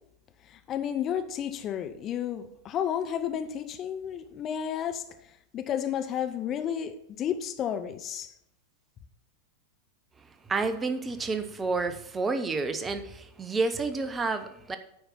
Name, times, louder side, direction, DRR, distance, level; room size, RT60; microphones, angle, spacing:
voice 1, 0.5-5.1 5.5-8.3, left 9 dB, 30° left, 0.6 m, -32 dB
voice 2, 10.5-14.8, right 3 dB, 15° right, 0.7 m, -30 dB
8.9 x 5.1 x 5.8 m
figure-of-eight pair, 90°, 0 cm